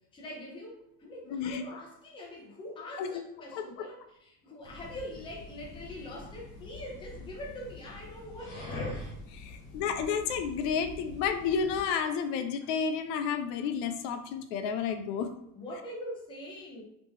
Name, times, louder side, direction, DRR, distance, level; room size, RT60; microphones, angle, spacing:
voice 1, 0.1-9.0 15.6-16.8, left 1 dB, 10° left, -2 dB, 0.5 m, -43 dB
voice 2, 1.3-1.7 3.0-3.2 3.5-3.9 9.3-15.3, left 6 dB, 75° left, 8 dB, 0.6 m, -31 dB
sound 1, 4.6-11.9, left 2 dB, 50° left, 1.2 m, -44 dB
3.3 x 2.9 x 3.5 m, 0.81 s
cardioid pair, 175°, 44 cm